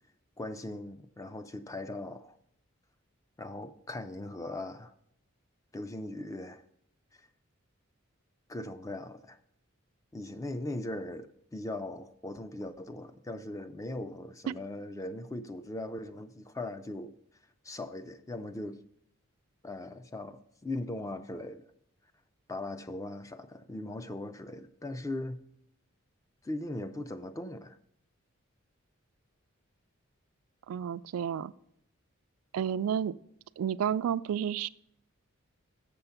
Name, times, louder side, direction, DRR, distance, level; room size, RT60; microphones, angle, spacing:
voice 1, 0.4-2.4 3.4-4.9 5.7-6.6 7.1-7.3 8.5-9.4 10.1-17.1 17.6-18.8 19.6-21.6 22.5-25.4 26.4-27.8, left 1 dB, 15° left, 0.3 m, -39 dB
voice 2, 30.7-31.5 32.5-33.1 33.6-34.7, right 8 dB, 85° right, 0.3 m, -31 dB
6.9 x 6.8 x 5.6 m
head